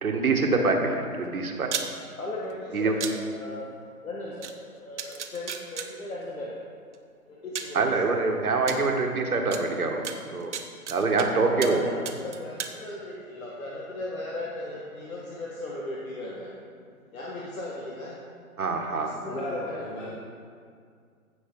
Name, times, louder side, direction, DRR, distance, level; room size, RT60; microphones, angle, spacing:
voice 1, 0.0-1.7 2.7-2.9 7.7-10.0 10.3-10.5 10.9-11.8 18.6-19.2, right 3 dB, 70° right, 3 dB, 1.6 m, -25 dB
sound 1, 1.6-1.9 3.0-3.1 4.4-4.5 5.0-5.9 6.9-7.0 7.5-7.8 8.7-8.8 9.5-9.6 10.0-11.3 11.6-11.8 12.0-12.7, right 7 dB, 50° right, 0.9 m, -33 dB
voice 2, 2.2-3.7 4.0-6.6 7.3-7.9 10.9-16.5 17.1-18.2 18.9-19.9, left 1 dB, 65° left, -4 dB, 1.7 m, -37 dB
voice 3, 19.3-20.1, left 2 dB, 15° left, -6 dB, 1.0 m, -36 dB
15.5 x 6.1 x 3.9 m, 2.2 s
figure-of-eight pair, 140°, 44 cm